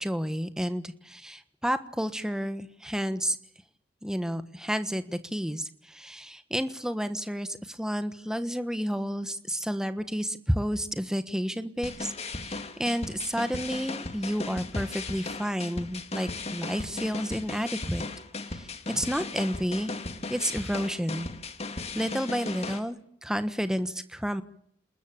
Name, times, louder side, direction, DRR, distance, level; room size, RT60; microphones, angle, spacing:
voice 1, 0.0-3.4 4.0-18.0 18.5-19.9 20.3-21.3 21.9-24.4, equal, 5° right, 10 dB, 1.3 m, -31 dB
sound 1, 11.8-22.8, left 3 dB, 35° left, 2.4 m, -37 dB
28.5 x 21.0 x 8.7 m, 0.70 s
head